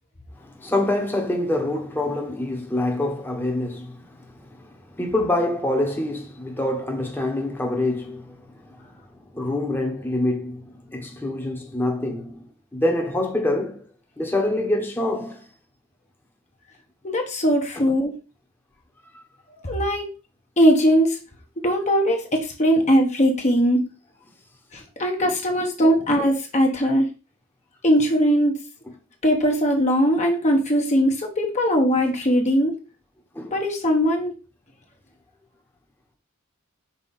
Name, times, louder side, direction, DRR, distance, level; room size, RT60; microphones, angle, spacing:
voice 1, 0.4-9.0 9.3-12.5 12.7-13.8 14.2-15.4 17.8-17.9 19.1-19.2 26.1-26.2 33.3-33.5, left 1 dB, 10° left, 1.2 m, -26 dB
voice 2, 17.0-18.1 19.6-20.1 20.6-21.2 21.6-23.9 24.7-27.1 27.8-28.6 29.2-32.7 33.5-34.3, equal, 35° left, 1.1 m, -20 dB
5.7 x 4.3 x 4.3 m
head